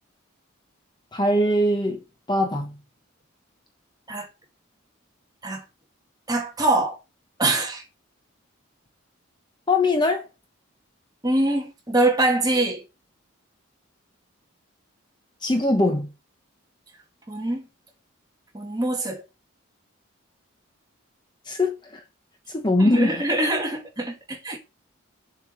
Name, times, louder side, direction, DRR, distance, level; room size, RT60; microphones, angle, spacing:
voice 1, 1.1-2.0 2.3-2.8 9.7-10.3 15.4-16.1 21.5-22.0 22.5-23.1, left 1 dB, 20° left, 0.9 m, -21 dB
voice 2, 6.3-7.0 7.4-7.8 11.2-12.8 17.3-17.6 18.5-19.2 22.8-24.6, right 2 dB, 20° right, 1.9 m, -24 dB
7.2 x 4.7 x 6.9 m
head